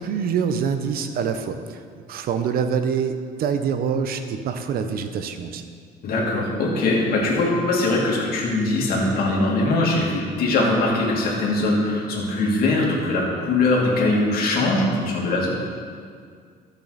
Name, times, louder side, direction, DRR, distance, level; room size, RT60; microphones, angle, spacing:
voice 1, 0.0-1.8 2.1-5.6, right 6 dB, 60° right, 8 dB, 0.8 m, -25 dB
voice 2, 6.0-15.5, left 2 dB, 60° left, -3 dB, 2.4 m, -21 dB
13.0 x 6.7 x 4.1 m, 2.1 s
cardioid pair, 110°, 17 cm